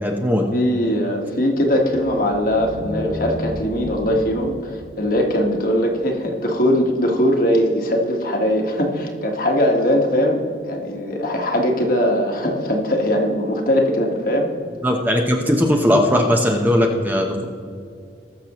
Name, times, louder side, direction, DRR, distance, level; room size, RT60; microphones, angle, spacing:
voice 1, 0.0-0.4 14.8-17.4, equal, 10° right, 1 dB, 0.9 m, -18 dB
voice 2, 0.5-14.5, equal, 50° left, 1 dB, 1.6 m, -20 dB
sound 1, 1.7-6.0, equal, 70° right, 2.5 m, -33 dB
20.5 x 6.8 x 3.1 m, 2.3 s
head